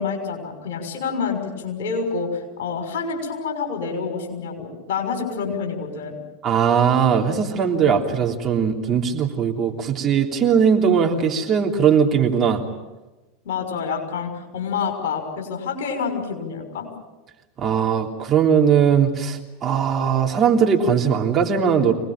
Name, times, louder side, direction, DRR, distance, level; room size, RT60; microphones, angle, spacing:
voice 1, 0.0-6.2 13.4-16.9, left 5 dB, 60° left, 3 dB, 6.2 m, -27 dB
voice 2, 6.4-12.6 17.6-21.9, right 7 dB, 30° right, 1 dB, 3.3 m, -19 dB
25.5 x 19.5 x 9.1 m, 1.1 s
figure-of-eight pair, 85°, 0 cm